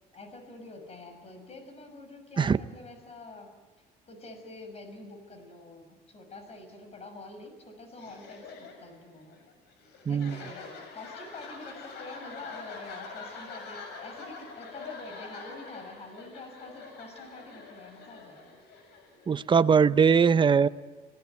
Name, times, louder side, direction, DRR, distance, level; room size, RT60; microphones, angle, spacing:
voice 1, 0.1-3.6 4.1-9.4 10.1-18.6, left 2 dB, 40° left, 7 dB, 6.5 m, -46 dB
sound 1, 7.9-19.6, left 4 dB, 80° left, 7.1 m, -45 dB
voice 2, 10.1-10.4 19.3-20.7, right 6 dB, 30° right, 13 dB, 0.8 m, -21 dB
26.0 x 19.0 x 9.5 m, 1.3 s
cardioid pair, 110°, 17 cm